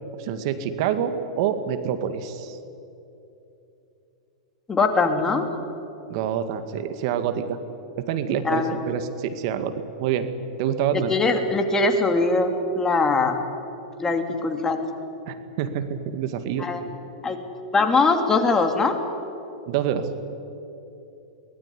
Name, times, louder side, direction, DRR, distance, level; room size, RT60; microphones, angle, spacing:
voice 1, 0.2-2.6 6.1-7.6 8.0-9.7 10.0-10.3 10.6-11.1 15.3-16.7 19.7-20.1, right 9 dB, 55° right, 9 dB, 2.0 m, -26 dB
voice 2, 4.7-5.5 8.4-8.8 11.1-13.4 14.0-14.8 16.6-16.8 17.2-17.4 17.7-19.0, left 3 dB, 15° left, 5 dB, 2.9 m, -21 dB
23.5 x 19.5 x 10.0 m, 2.9 s
hypercardioid pair, 115°, 3 cm